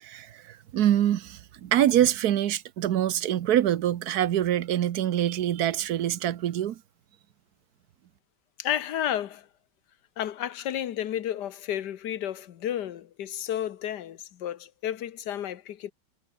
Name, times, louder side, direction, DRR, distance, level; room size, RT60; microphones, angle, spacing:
voice 1, 0.0-6.8, right 11 dB, 60° right, 1.3 m, -25 dB
voice 2, 8.6-9.5 10.2-15.9, left 11 dB, 65° left, 1.6 m, -32 dB
omnidirectional pair, 2.0 m